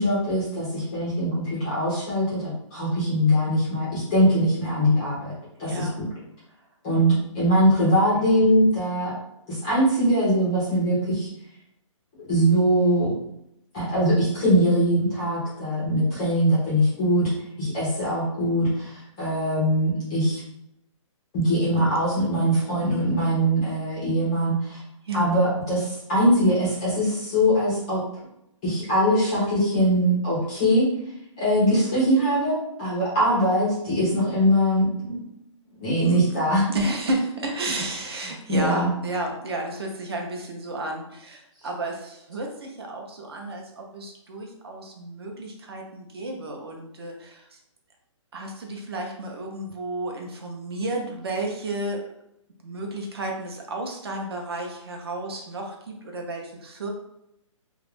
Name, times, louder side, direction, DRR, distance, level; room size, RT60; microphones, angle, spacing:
voice 1, 0.0-5.3 5.6-5.9 6.8-9.1 9.5-11.3 12.3-13.1 13.7-17.3 17.6-20.4 21.3-24.8 25.1-28.0 28.6-30.9 31.4-35.2 35.8-36.6 38.5-38.9, equal, 10° left, -9 dB, 0.4 m, -22 dB
voice 2, 5.6-5.9 21.6-22.0 25.0-25.3 36.0-36.4 36.7-47.6 48.3-52.1 52.6-56.9, right 1 dB, 50° right, 1 dB, 0.6 m, -32 dB
2.3 x 2.0 x 3.1 m, 0.79 s
hypercardioid pair, 170°, 17 cm